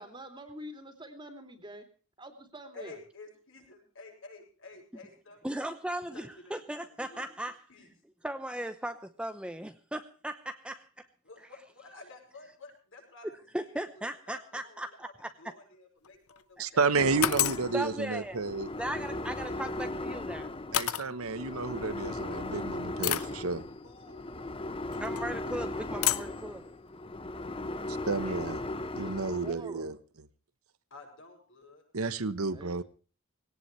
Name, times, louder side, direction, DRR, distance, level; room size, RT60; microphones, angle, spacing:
voice 1, 0.0-1.9 2.2-3.0 29.0-29.9 32.5-32.8, equal, 20° right, 6 dB, 2.8 m, -46 dB
voice 2, 2.7-5.8 6.1-7.3 7.7-7.9 11.2-15.1 15.4-16.8 23.8-24.2 28.1-28.9 30.9-31.8, left 3 dB, 60° left, 2 dB, 7.0 m, -52 dB
voice 3, 5.4-7.5 8.2-11.0 13.5-15.3 17.7-18.4 18.8-20.5 25.0-26.6, right 1 dB, 5° right, 8 dB, 0.8 m, -37 dB
sound 1, 16.0-16.4 17.2-17.7 19.7-19.9 20.7-21.1 22.0-22.1 23.0-23.4 24.9-25.2 26.0-26.4, left 12 dB, 85° left, 0.8 m, -29 dB
voice 4, 16.6-18.7 20.7-23.6 28.1-28.6 28.9-29.9 31.9-32.8, right 4 dB, 80° right, 13 dB, 1.1 m, -31 dB
sound 2, 17.0-29.5, left 2 dB, 25° left, 0.8 m, -38 dB
20.0 x 18.0 x 3.3 m, 0.38 s
head